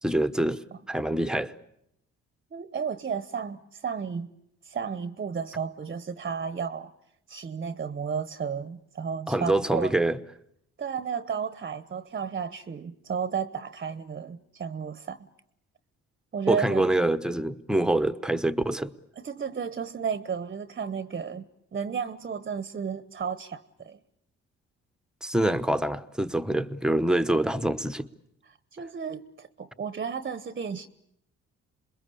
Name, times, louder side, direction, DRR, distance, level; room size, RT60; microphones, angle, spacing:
voice 1, 0.0-1.5 9.3-10.2 16.5-18.9 25.2-28.1, right 1 dB, ahead, 1.0 m, -25 dB
voice 2, 2.5-4.3 4.6-6.9 7.3-10.0 10.8-15.3 16.3-16.9 19.2-24.0 28.5-30.9, right 6 dB, 30° right, 0.9 m, -33 dB
27.5 x 21.5 x 8.4 m
cardioid pair, 90°, 30 cm